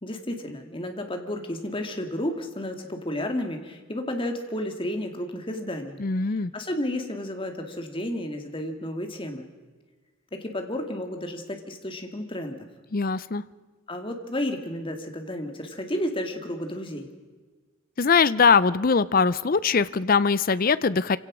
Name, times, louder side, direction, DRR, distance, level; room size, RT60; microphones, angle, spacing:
voice 1, 0.0-6.0 6.5-9.5 10.3-12.6 13.9-17.1, left 1 dB, 25° left, 5 dB, 2.0 m, -32 dB
voice 2, 6.0-6.5 12.9-13.4 18.0-21.2, left 5 dB, 45° left, 17 dB, 0.5 m, -21 dB
26.0 x 17.0 x 6.1 m, 1.4 s
head